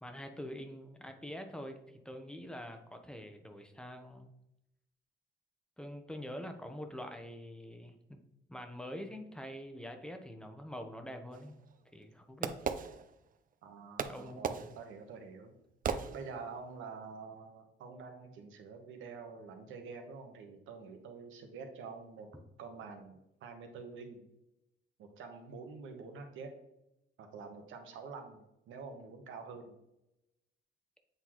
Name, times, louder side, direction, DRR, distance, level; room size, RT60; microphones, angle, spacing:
voice 1, 0.0-4.3 5.8-8.2 8.5-11.6 11.9-12.5 14.1-14.7 15.9-16.1, equal, 5° left, 6 dB, 0.9 m, -45 dB
Fireworks, 11.3-13.5 14.0-16.7, right 7 dB, 45° right, 0.5 m, -39 dB
voice 2, 13.6-15.6 16.1-22.3 22.6-24.3 25.0-26.5 27.2-29.7, right 4 dB, 85° right, 5 dB, 1.1 m, -47 dB
8.0 x 3.9 x 3.0 m, 0.87 s
cardioid pair, 90°, 20 cm